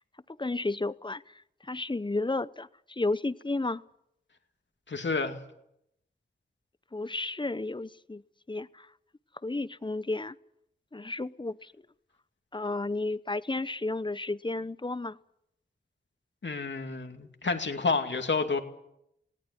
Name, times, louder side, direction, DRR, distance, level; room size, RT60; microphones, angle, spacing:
voice 1, 0.4-3.8 6.9-8.2 8.5-8.9 9.4-10.3 10.9-11.7 12.5-15.2, left 2 dB, 25° left, 17 dB, 0.8 m, -32 dB
voice 2, 4.9-5.4 16.4-18.6, left 4 dB, 70° left, 5 dB, 2.5 m, -29 dB
19.5 x 18.0 x 9.6 m, 0.77 s
wide cardioid pair, 60°, 19 cm